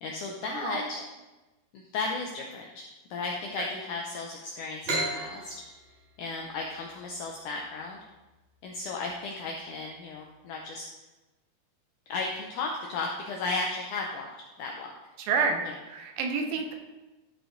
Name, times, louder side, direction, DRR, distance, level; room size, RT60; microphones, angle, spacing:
voice 1, 0.0-1.0 1.7-5.6 6.2-8.0 8.6-10.8 12.1-14.3 14.6-14.9 15.6-15.7, left 3 dB, 85° left, 0 dB, 1.8 m, -35 dB
voice 2, 0.5-0.8 3.6-3.7 15.2-16.7, right 5 dB, 75° right, 3 dB, 2.5 m, -29 dB
sound 1, 4.8-8.3, right 1 dB, 55° right, 4.6 m, -35 dB
12.5 x 4.9 x 3.8 m, 1.1 s
omnidirectional pair, 4.5 m